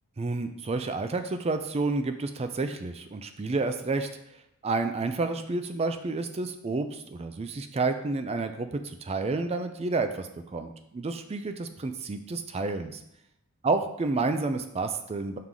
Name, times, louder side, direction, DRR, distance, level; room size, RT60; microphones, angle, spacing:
voice 1, 0.2-4.1 4.6-13.0 13.6-15.4, right 3 dB, 30° right, 8 dB, 0.4 m, -30 dB
5.6 x 4.6 x 3.8 m, 0.81 s
head